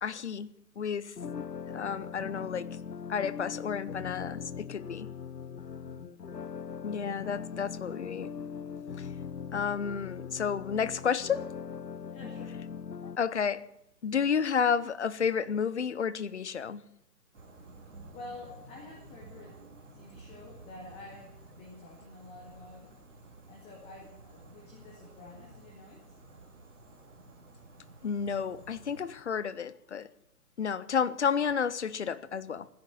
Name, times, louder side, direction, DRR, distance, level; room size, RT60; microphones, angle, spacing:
voice 1, 0.0-1.2 1.7-2.8 3.1-5.1 6.8-8.3 9.0-9.1 9.5-11.5 13.2-13.7 14.0-16.8 28.0-30.1 30.6-32.7, left 7 dB, 45° left, 0.8 m, -31 dB
sound 1, 1.2-13.2, left 6 dB, 90° left, 0.8 m, -40 dB
voice 2, 12.0-12.6 18.1-19.6 19.9-22.9 23.5-26.0, left 2 dB, 15° left, 2.0 m, -49 dB
sound 2, 17.3-29.0, right 2 dB, 50° right, 2.5 m, -52 dB
14.5 x 10.5 x 8.7 m
figure-of-eight pair, 135°, 48 cm